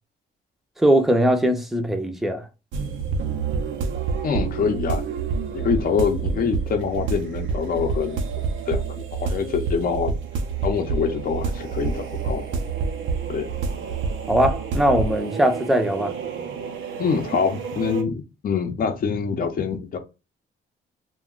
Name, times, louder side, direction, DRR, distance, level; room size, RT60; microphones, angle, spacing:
voice 1, 0.8-2.4 14.3-16.1, equal, ahead, 0.6 m, -20 dB
sound 1, 2.7-18.0, right 5 dB, 75° right, 0.6 m, -28 dB
voice 2, 4.2-5.0 5.5-8.2 8.7-10.1 10.6-12.4 13.3-13.5 17.0-20.0, left 6 dB, 45° left, 0.6 m, -25 dB
2.3 x 2.3 x 3.6 m
cardioid pair, 90°, 20 cm